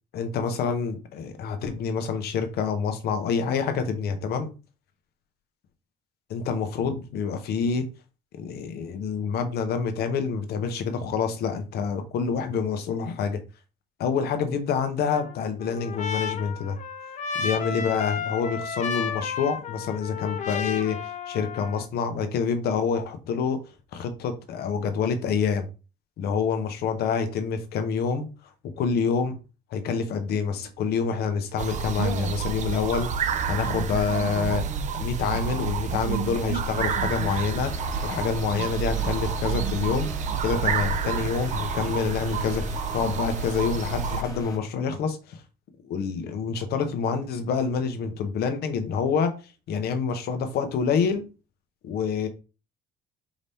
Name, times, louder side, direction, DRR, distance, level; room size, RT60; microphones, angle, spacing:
voice 1, 0.1-4.5 6.3-7.9 8.4-13.4 14.0-16.8 17.4-23.6 23.9-25.7 26.2-28.3 28.8-29.4 29.7-34.6 35.0-37.7 38.0-40.1 40.4-45.4 45.8-49.3 49.7-51.2 51.8-52.3, left 6 dB, 70° left, 0.9 m, -27 dB
Trumpet, 15.1-21.9, left 6 dB, 45° left, 0.6 m, -33 dB
sound 1, 31.6-44.2, right 6 dB, 45° right, 0.5 m, -29 dB
sound 2, 37.6-44.6, left 2 dB, 20° left, 1.1 m, -39 dB
4.9 x 2.8 x 3.5 m
cardioid pair, 110°, 17 cm